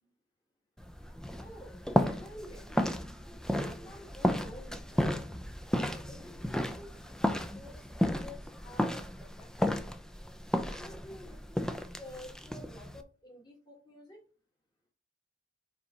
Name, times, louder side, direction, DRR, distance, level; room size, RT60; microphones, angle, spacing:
sound 1, 0.8-13.0, equal, 5° left, 0.4 m, -33 dB
voice 1, 1.4-2.9 3.6-5.1 5.6-9.8 10.7-14.2, left 1 dB, 25° left, -2 dB, 1.7 m, -51 dB
5.2 x 4.1 x 4.7 m, 0.36 s
head